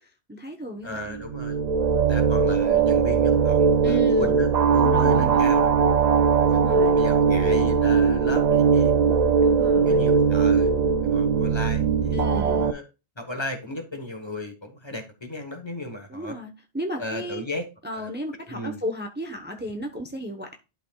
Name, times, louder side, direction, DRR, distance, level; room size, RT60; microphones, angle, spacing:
voice 1, 0.0-1.2 3.8-4.3 4.8-5.5 6.5-7.0 9.4-10.1 12.1-12.7 16.1-17.4 17.8-20.6, equal, 10° right, 0.9 m, -34 dB
voice 2, 0.8-1.6 2.1-5.8 6.5-8.9 9.6-10.7 11.0-12.8 13.2-16.4 17.0-17.7 17.9-18.1 18.5-18.8, left 1 dB, 25° left, 1.3 m, -35 dB
sound 1, 1.1-12.7, right 6 dB, 50° right, 0.5 m, -20 dB
11.5 x 5.1 x 2.3 m
omnidirectional pair, 1.0 m